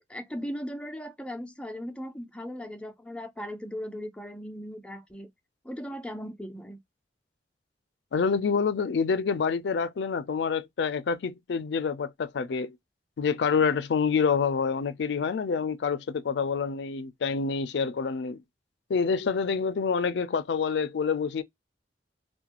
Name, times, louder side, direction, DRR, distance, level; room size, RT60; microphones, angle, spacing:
voice 1, 0.1-5.3 5.6-6.8, equal, 5° left, 0.4 m, -38 dB
voice 2, 8.1-12.8 13.2-18.4 18.9-21.4, left 5 dB, 70° left, 0.4 m, -27 dB
2.4 x 2.1 x 2.8 m
head